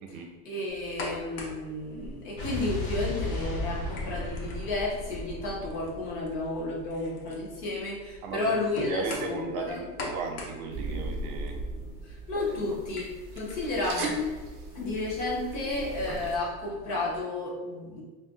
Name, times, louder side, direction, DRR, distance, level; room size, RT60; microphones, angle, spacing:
voice 1, 0.5-9.8 12.0-13.1 13.4-14.1 14.7-18.0, left 2 dB, 25° left, -4 dB, 0.3 m, -32 dB
sound 1, 0.7-17.2, left 1 dB, 70° left, 0.9 m, -44 dB
Explosion, 2.4-6.7, left 2 dB, 50° left, 1.1 m, -35 dB
voice 2, 8.2-11.6 12.5-12.6, right 4 dB, 75° right, 3 dB, 0.7 m, -36 dB
sound 2, 10.7-16.4, right 1 dB, 35° right, 0.5 m, -37 dB
2.5 x 2.3 x 3.8 m, 1.3 s
supercardioid pair, 175°, 43 cm